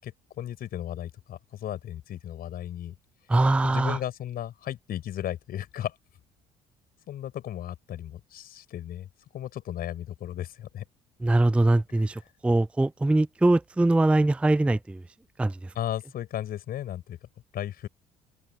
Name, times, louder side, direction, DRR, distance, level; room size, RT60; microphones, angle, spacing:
voice 1, 0.0-2.9 3.6-5.9 7.1-9.1 9.3-10.8 15.8-17.2 17.5-17.9, left 11 dB, 55° left, 5.8 m, -35 dB
voice 2, 3.3-4.0 11.2-15.0 15.4-15.7, right 2 dB, 5° right, 0.4 m, -22 dB
open air
hypercardioid pair, 55°, 18 cm